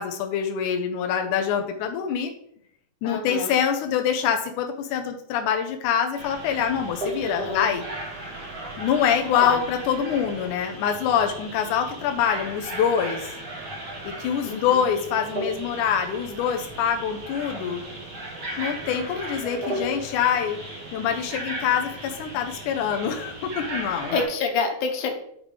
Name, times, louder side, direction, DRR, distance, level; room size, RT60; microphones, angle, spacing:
voice 1, 0.0-2.3 3.0-7.8 8.8-13.3 14.0-17.8 18.6-20.6 20.9-24.1, left 8 dB, 85° left, 4 dB, 1.8 m, -25 dB
voice 2, 3.0-3.5 7.2-7.7 9.3-9.6 14.4-14.9 23.9-25.1, left 4 dB, 65° left, 3 dB, 2.3 m, -28 dB
sound 1, 6.1-24.2, right 1 dB, 50° right, 1.3 m, -36 dB
9.8 x 3.7 x 4.9 m, 0.70 s
omnidirectional pair, 4.4 m